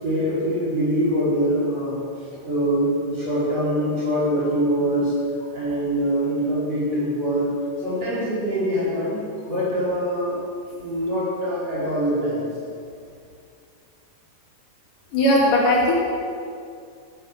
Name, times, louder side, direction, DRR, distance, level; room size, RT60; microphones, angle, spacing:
voice 1, 0.0-5.1 5.5-7.5 7.8-10.4 10.8-12.5, equal, 50° right, -9 dB, 6.1 m, -24 dB
voice 2, 15.1-15.9, left 1 dB, 80° left, -4 dB, 4.6 m, -18 dB
13.0 x 12.5 x 6.7 m, 2.4 s
omnidirectional pair, 3.7 m